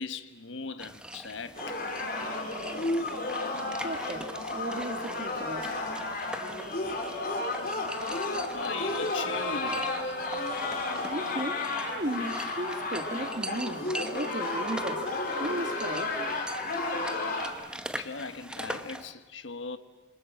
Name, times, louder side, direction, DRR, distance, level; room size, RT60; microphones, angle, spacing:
voice 1, 0.0-1.7 8.5-9.9 18.0-19.8, left 4 dB, 75° left, 1.2 m, -38 dB
sound 1, 0.8-19.1, right 1 dB, 5° right, 0.9 m, -42 dB
sound 2, 1.6-17.5, left 2 dB, 45° left, 3.5 m, -32 dB
voice 2, 3.8-5.8 11.0-15.1 15.4-16.2, right 1 dB, 40° right, 2.1 m, -36 dB
26.5 x 26.5 x 7.5 m
head